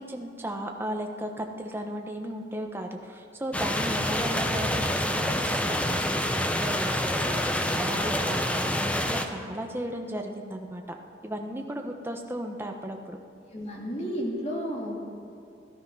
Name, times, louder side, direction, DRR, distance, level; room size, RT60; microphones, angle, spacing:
voice 1, 0.0-10.8 11.2-13.2, right 1 dB, 15° right, 3 dB, 1.1 m, -35 dB
sound 1, 3.5-9.3, left 1 dB, 5° left, 0.7 m, -27 dB
voice 2, 13.5-15.2, equal, 40° left, -2 dB, 2.8 m, -32 dB
16.5 x 12.0 x 5.6 m, 2.6 s
head